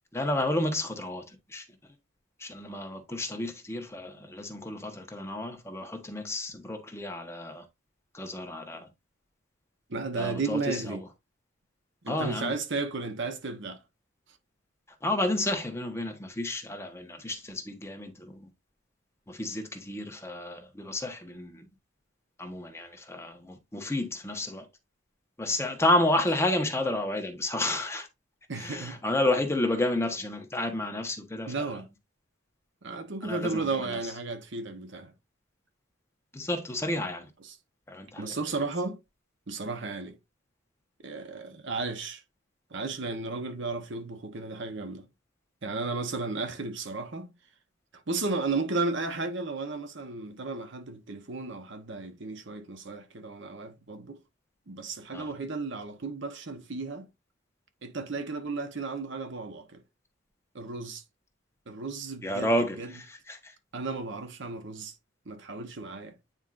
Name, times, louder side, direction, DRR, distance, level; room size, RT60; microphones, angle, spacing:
voice 1, 0.1-1.6 2.4-7.6 8.1-8.9 10.2-11.0 12.1-12.5 15.0-18.5 19.3-21.6 22.4-24.7 25.4-28.1 28.5-31.5 33.2-33.7 36.3-37.3 37.9-38.3 55.1-55.3 62.2-63.5, left 1 dB, 15° left, 1.1 m, -31 dB
voice 2, 9.9-11.0 12.0-13.8 28.5-29.0 31.5-31.9 32.8-35.1 37.4-37.5 38.2-39.0 39.5-40.2 41.0-42.2 42.7-45.0 45.6-47.3 48.1-54.2 54.7-57.1 57.8-59.8 60.5-61.0 61.7-62.5 62.8-62.9 63.7-64.9 65.3-66.2, right 3 dB, 60° right, 1.0 m, -34 dB
9.0 x 4.4 x 2.5 m
head